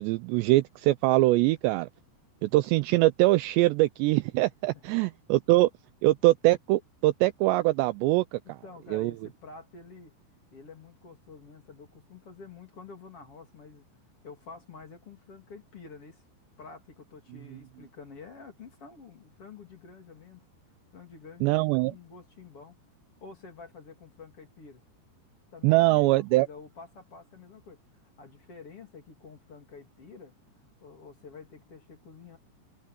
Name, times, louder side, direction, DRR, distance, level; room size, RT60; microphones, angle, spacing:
voice 1, 0.0-1.9 2.4-5.7 6.0-8.4 8.9-9.1 21.4-21.9 25.6-26.5, right 19 dB, 85° right, 2.6 m, -23 dB
voice 2, 8.4-10.1 10.5-13.9 14.2-16.2 16.6-20.4 20.9-22.8 23.2-24.8 25.5-27.8 28.2-30.4 30.8-32.4, left 5 dB, 35° left, 3.4 m, -48 dB
omnidirectional pair, 5.4 m